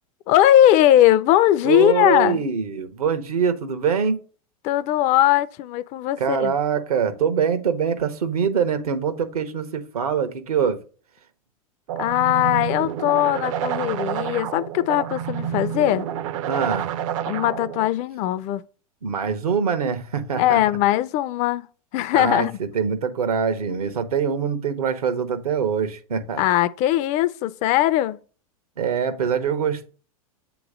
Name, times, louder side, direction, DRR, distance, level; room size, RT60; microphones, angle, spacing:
voice 1, 0.3-2.4 4.6-6.5 12.0-16.1 17.3-18.6 20.4-21.7 21.9-22.5 26.4-28.2, left 13 dB, 40° left, 0.5 m, -19 dB
voice 2, 1.6-4.2 6.2-10.8 16.5-16.9 19.0-20.6 22.1-26.4 28.8-29.9, right 6 dB, 80° right, 1.1 m, -24 dB
sound 1, 11.9-17.9, right 10 dB, 60° right, 0.6 m, -29 dB
8.1 x 3.1 x 5.0 m
hypercardioid pair, 100°, 19 cm